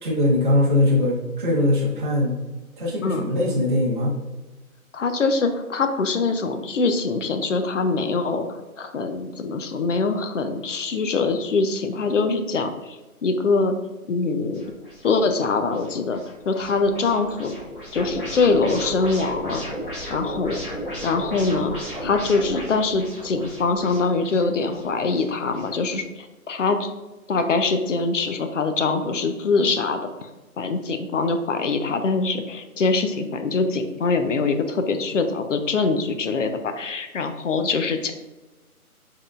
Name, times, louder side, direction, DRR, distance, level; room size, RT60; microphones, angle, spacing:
voice 1, 0.0-2.3 2.8-4.1, left 1 dB, 35° right, -4 dB, 0.6 m, -21 dB
voice 2, 4.9-13.8 14.1-14.7 15.0-17.5 17.9-19.6 20.1-20.6 21.0-26.9 27.3-30.3 30.6-38.1, left 4 dB, 55° left, 7 dB, 0.5 m, -23 dB
sound 1, 14.5-26.0, equal, 35° left, 1.4 m, -35 dB
4.3 x 3.6 x 2.4 m, 1.1 s
hypercardioid pair, 165°, 44 cm